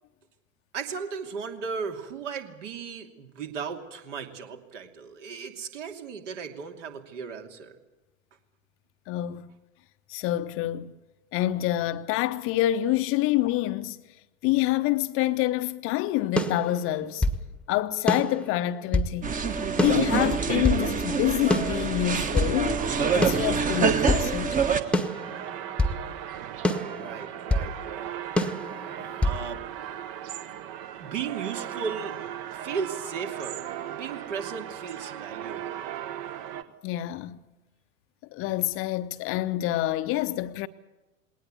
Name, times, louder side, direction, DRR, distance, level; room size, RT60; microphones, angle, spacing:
voice 1, 0.7-7.8 26.9-28.1 29.2-29.6 31.0-32.2 32.5-35.9, right 6 dB, 60° right, 2.8 m, -36 dB
voice 2, 9.1-9.5 10.1-10.9 11.3-14.0 14.4-17.3 17.7-19.3 19.8-22.8 23.1-24.6 36.8-37.4 38.3-40.7, left 14 dB, 30° left, 0.8 m, -27 dB
sound 1, 16.4-17.4 18.1-19.1 19.8-20.9 21.5-22.5 23.2-24.3 24.9-26.0 26.6-27.7 28.4-29.4, left 1 dB, 5° left, 1.2 m, -27 dB
sound 2, 19.2-24.8, right 5 dB, 20° right, 1.3 m, -26 dB
sound 3, 22.1-36.6, right 10 dB, 45° right, 1.3 m, -38 dB
20.5 x 18.5 x 8.3 m
figure-of-eight pair, 90°, 41 cm